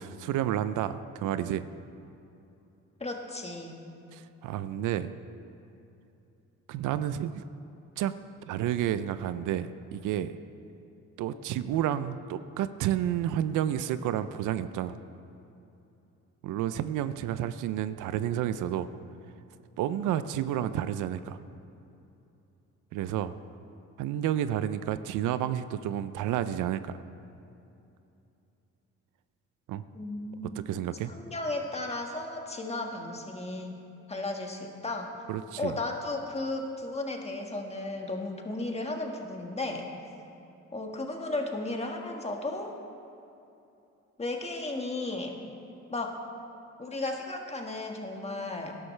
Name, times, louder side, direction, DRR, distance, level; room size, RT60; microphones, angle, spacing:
voice 1, 0.0-1.7 4.1-5.1 6.7-7.4 8.0-8.1 8.4-10.3 11.2-15.0 16.4-18.9 19.8-21.4 22.9-23.3 24.0-27.0 29.7-29.8 30.7-31.1 35.3-35.8, right 11 dB, 85° right, 13 dB, 0.5 m, -30 dB
voice 2, 3.0-3.8 29.9-30.6 31.0-33.7 34.1-35.1 35.6-39.8 40.7-42.7 44.2-45.5 45.9-46.2 46.8-48.7, left 2 dB, 20° left, 2 dB, 1.7 m, -34 dB
18.0 x 11.5 x 3.3 m, 2.8 s
cardioid pair, 90°, 30 cm